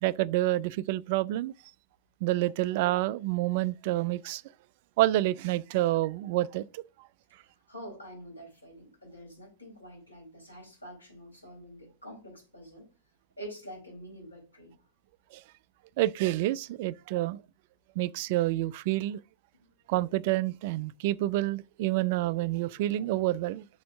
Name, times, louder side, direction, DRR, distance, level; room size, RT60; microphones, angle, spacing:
voice 1, 0.0-1.5 2.2-4.4 5.0-7.1 15.3-15.4 16.0-17.4 18.0-19.2 19.9-23.7, right 16 dB, 50° right, 0.3 m, -28 dB
voice 2, 7.7-12.9 13.4-14.8 19.5-19.7, equal, 80° left, 4.9 m, -46 dB
6.3 x 4.2 x 6.1 m
figure-of-eight pair, 90°, 0 cm